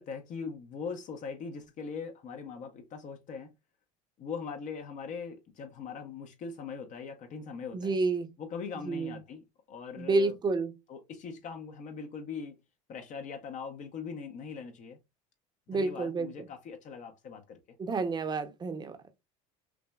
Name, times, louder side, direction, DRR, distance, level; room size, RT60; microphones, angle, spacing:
voice 1, 0.0-3.5 4.2-8.0 8.4-10.3 10.9-12.6 12.9-15.0 15.7-17.6, left 5 dB, 50° left, 0.7 m, -41 dB
voice 2, 7.7-8.3 8.8-9.2 10.0-10.7 15.7-16.5 17.8-19.0, right 3 dB, 25° right, 0.7 m, -30 dB
5.9 x 2.1 x 2.3 m
supercardioid pair, 105°, 17 cm